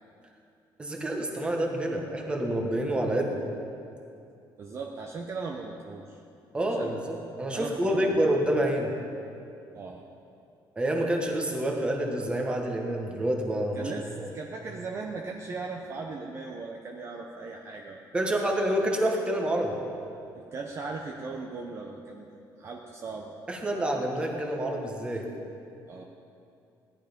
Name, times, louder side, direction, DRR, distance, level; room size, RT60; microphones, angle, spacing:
voice 1, 0.8-3.4 6.5-8.9 10.8-13.8 18.1-19.8 23.5-25.3, right 1 dB, 10° right, 2 dB, 1.4 m, -28 dB
voice 2, 4.6-6.2 6.6-7.0 7.5-8.2 9.7-10.0 13.7-18.0 20.3-22.3 22.6-23.4 25.9-26.0, right 4 dB, 30° right, 1 dB, 0.8 m, -38 dB
17.0 x 11.5 x 5.2 m, 2.6 s
cardioid pair, 180°, 8 cm